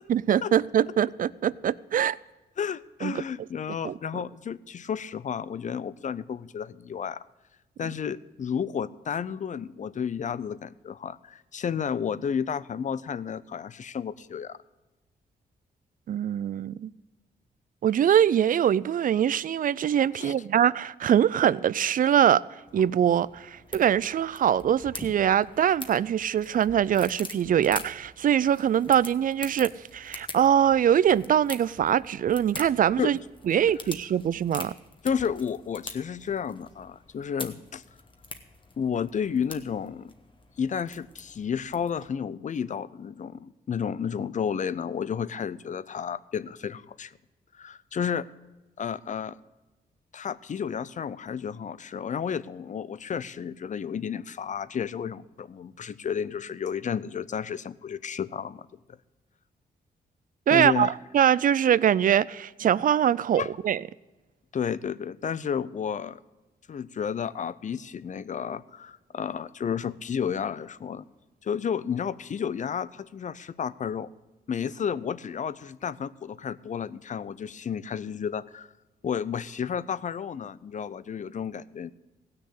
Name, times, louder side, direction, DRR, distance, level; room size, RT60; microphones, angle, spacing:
voice 1, 0.1-2.2 3.0-3.2 3.8-4.0 16.1-16.9 17.8-22.4 22.7-33.2 33.5-34.7 60.5-63.8, right 9 dB, 55° right, 0.4 m, -23 dB
voice 2, 2.6-7.2 7.8-14.6 20.1-20.3 33.0-33.2 33.5-33.7 35.0-37.8 38.8-40.1 40.6-47.1 47.5-48.3 48.8-49.4 50.1-58.7 60.5-60.9 63.3-63.5 64.5-66.2 66.7-71.1 71.4-74.1 74.5-78.7 79.0-81.9, left 7 dB, 45° left, 0.5 m, -32 dB
sound 1, 22.7-42.1, left 3 dB, 30° left, 1.2 m, -45 dB
16.0 x 6.5 x 8.3 m
cardioid pair, 80°, 17 cm